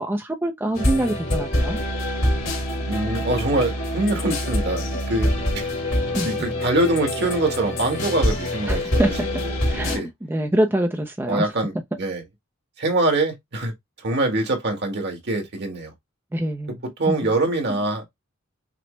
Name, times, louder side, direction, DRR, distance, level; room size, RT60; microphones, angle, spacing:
voice 1, 0.0-1.8 6.1-6.4 8.7-9.1 9.7-11.5 16.3-16.8 17.1-17.2, right 1 dB, 10° right, 0.4 m, -25 dB
sound 1, 0.7-10.0, left 1 dB, 80° left, 2.5 m, -25 dB
voice 2, 2.8-5.7 6.2-9.1 9.4-9.6 9.9-10.1 11.3-12.2 12.8-13.7 14.0-15.9 16.8-18.0, right 2 dB, 55° right, 1.5 m, -24 dB
5.9 x 2.1 x 3.1 m
head